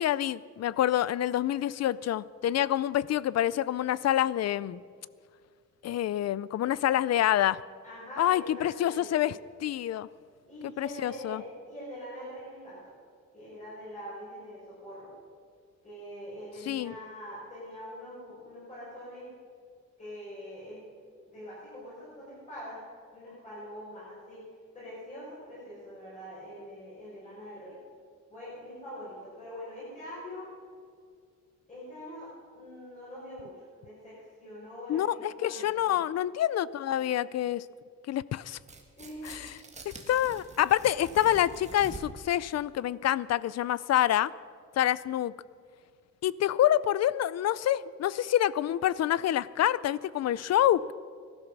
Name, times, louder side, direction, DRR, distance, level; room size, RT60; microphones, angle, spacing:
voice 1, 0.0-4.8 5.8-7.6 8.2-10.1 10.8-11.4 16.7-16.9 34.9-37.6 38.1-38.6 39.2-39.5 40.1-44.3 44.8-45.3 46.2-50.9, left 12 dB, 60° left, 19 dB, 0.4 m, -27 dB
voice 2, 7.8-9.3 10.5-12.9 13.3-15.1 15.8-19.3 20.0-20.8 21.3-22.8 23.1-24.4 24.7-27.8 28.3-30.5 31.7-36.0 39.0-39.5, equal, 25° left, -9 dB, 5.5 m, -44 dB
Tearing, 38.6-42.3, right 3 dB, 25° right, 1.6 m, -46 dB
18.5 x 12.5 x 6.1 m, 2.1 s
wide cardioid pair, 175°, 30 cm